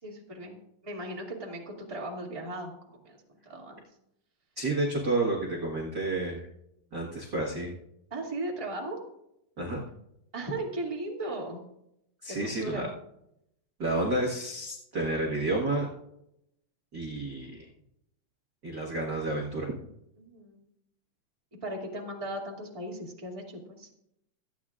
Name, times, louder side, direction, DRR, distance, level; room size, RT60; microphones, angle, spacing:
voice 1, 0.0-3.2 3.4-3.8 8.1-9.0 10.3-11.6 12.3-12.9 20.2-20.6 21.6-23.9, right 1 dB, 10° right, -3 dB, 1.8 m, -37 dB
voice 2, 4.6-6.5 6.9-7.7 9.6-9.8 12.2-12.9 13.8-15.9 16.9-17.7 18.6-19.7, right 2 dB, 45° right, -2 dB, 1.5 m, -30 dB
26.0 x 9.2 x 2.5 m, 0.79 s
omnidirectional pair, 4.1 m